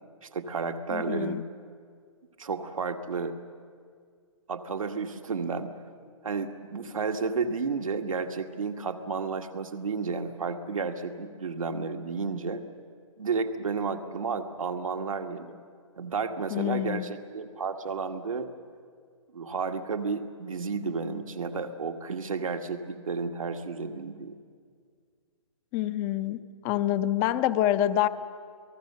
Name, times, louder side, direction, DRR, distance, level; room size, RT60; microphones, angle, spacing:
voice 1, 0.2-1.4 2.4-3.4 4.5-5.7 6.2-12.6 13.2-15.6 16.0-18.5 19.3-24.4, right 4 dB, 85° right, 6 dB, 1.8 m, -32 dB
voice 2, 0.9-1.4 16.5-17.1 25.7-26.4 26.6-28.1, left 12 dB, 20° left, 13 dB, 0.6 m, -26 dB
29.5 x 19.0 x 6.8 m, 2.1 s
hypercardioid pair, 155°, 17 cm